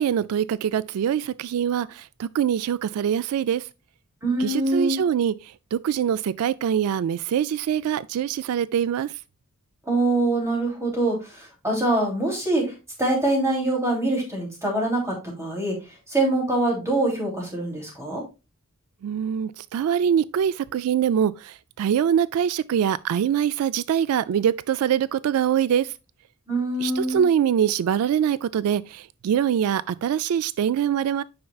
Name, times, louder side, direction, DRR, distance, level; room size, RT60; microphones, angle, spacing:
voice 1, 0.0-3.6 4.4-9.1 19.0-25.9 26.8-31.2, right 9 dB, 90° right, 0.3 m, -24 dB
voice 2, 4.2-5.0 9.9-12.6 13.0-15.7 16.1-18.2 26.5-27.2, right 2 dB, 15° right, 3.0 m, -24 dB
8.6 x 5.6 x 2.3 m
head